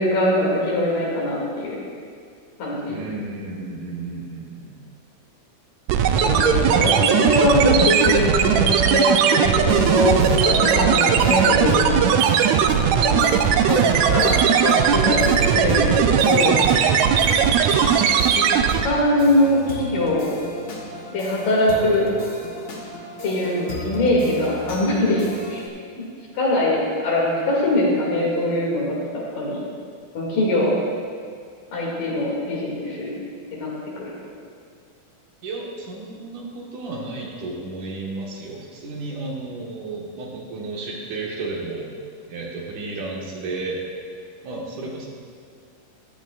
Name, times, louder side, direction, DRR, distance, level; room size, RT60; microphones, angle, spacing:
voice 1, 0.0-1.8 2.6-3.0 6.1-12.1 13.0-13.4 13.7-14.4 14.6-16.6 17.6-17.7 18.4-18.5 18.8-20.4 21.1-22.1 23.2-25.2 25.5-25.6 26.0-26.1 26.3-29.0 29.3-29.6 30.1-30.7 31.7-33.1 33.5-33.7 34.0-34.1, left 1 dB, 75° left, -5 dB, 4.0 m, -22 dB
voice 2, 2.9-4.8 6.5-7.3 17.2-17.5 35.4-41.9 42.3-43.8 44.4-45.1, right 3 dB, 65° right, -3 dB, 2.9 m, -33 dB
sound 1, 5.9-19.0, right 8 dB, 90° right, 1.6 m, -18 dB
sound 2, 9.7-25.7, left 1 dB, 55° left, 1.5 m, -35 dB
14.5 x 12.5 x 2.4 m, 2.2 s
omnidirectional pair, 3.9 m